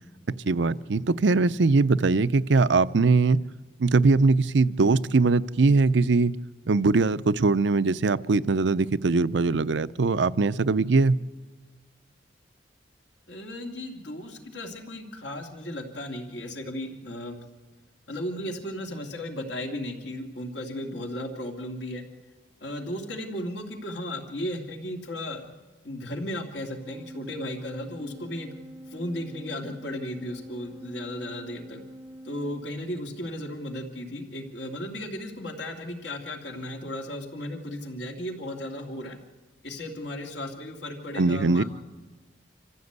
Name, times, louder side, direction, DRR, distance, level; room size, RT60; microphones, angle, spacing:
voice 1, 0.5-3.4 3.8-6.3 6.7-11.2 41.2-41.6, right 3 dB, 80° right, 16 dB, 0.6 m, -21 dB
voice 2, 13.3-17.4 18.1-22.0 22.6-25.4 25.8-28.5 28.9-31.8 32.2-39.2 39.6-41.6, left 1 dB, 75° left, 3 dB, 2.6 m, -35 dB
Organ, 26.8-33.3, equal, 15° right, 0.6 m, -45 dB
26.5 x 15.0 x 8.1 m, 1.3 s
head